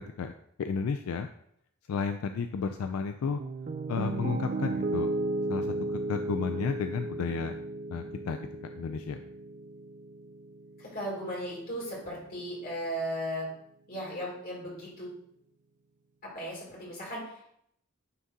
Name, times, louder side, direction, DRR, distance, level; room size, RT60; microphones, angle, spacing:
voice 1, 0.6-1.3 1.9-3.4 3.9-5.1 5.5-7.5 7.9-8.4 8.8-9.2, left 5 dB, 75° left, 8 dB, 0.3 m, -32 dB
Piano, 3.4-11.5, right 2 dB, 35° right, 0.3 m, -35 dB
voice 2, 10.8-13.5 13.9-15.1 16.3-17.4, equal, 45° left, -4 dB, 2.5 m, -36 dB
9.5 x 3.6 x 2.7 m, 0.70 s
head